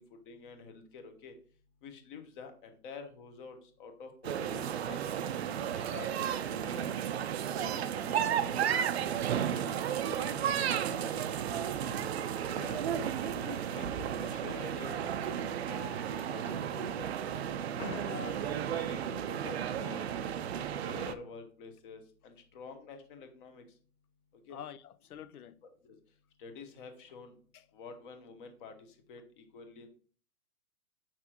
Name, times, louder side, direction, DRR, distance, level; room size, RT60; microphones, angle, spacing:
voice 1, 0.0-1.3 1.8-5.0 5.6-6.9 7.5-11.9 13.2-17.1 17.9-18.1 18.7-20.2 20.8-23.6 24.5-24.6 25.6-26.0 26.4-27.3 27.7-29.9, left 4 dB, 35° left, 1.1 m, -49 dB
sound 1, 4.2-21.1, right 9 dB, 45° right, 0.5 m, -33 dB
voice 2, 12.4-13.0 17.8-18.6 24.5-25.6 27.5-27.6, left 8 dB, 75° left, 0.7 m, -45 dB
7.5 x 5.9 x 2.9 m
hypercardioid pair, 145°, 44 cm